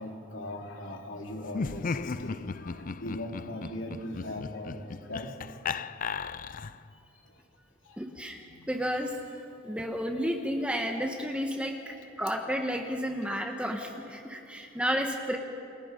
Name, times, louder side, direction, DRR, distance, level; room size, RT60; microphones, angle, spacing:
voice 1, 0.0-5.9 7.1-7.3 7.8-8.7 11.7-11.8 14.2-14.5, left 1 dB, 70° left, 1 dB, 3.1 m, -41 dB
Laughter, 1.5-6.9, left 5 dB, 45° left, 0.5 m, -36 dB
voice 2, 8.0-15.4, equal, 5° right, 2 dB, 1.4 m, -32 dB
28.5 x 28.0 x 5.3 m, 2.7 s
head